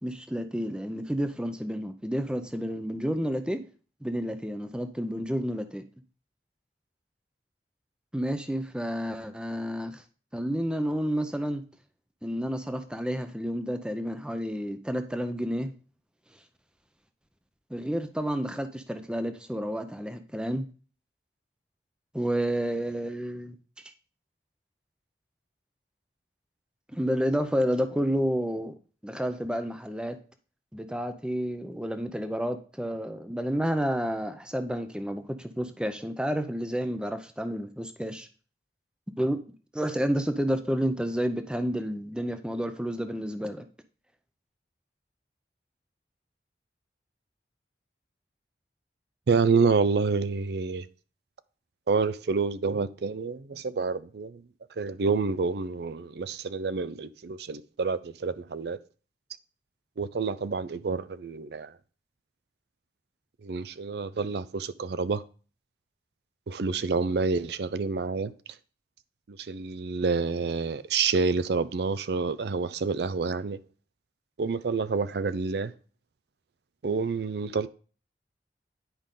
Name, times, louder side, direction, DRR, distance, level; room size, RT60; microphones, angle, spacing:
voice 1, 0.0-3.6 4.0-5.8 8.1-10.0 10.3-11.6 12.2-15.7 17.7-20.6 22.1-23.6 26.9-28.7 29.0-30.2 30.7-38.3 39.2-39.4 39.7-43.7, equal, 5° right, 0.6 m, -30 dB
voice 2, 49.3-50.9 51.9-54.4 54.8-58.8 60.0-61.7 63.4-65.2 66.5-68.3 69.3-73.6 74.4-75.7 76.8-77.7, right 4 dB, 70° right, 0.5 m, -28 dB
10.5 x 5.1 x 3.8 m
head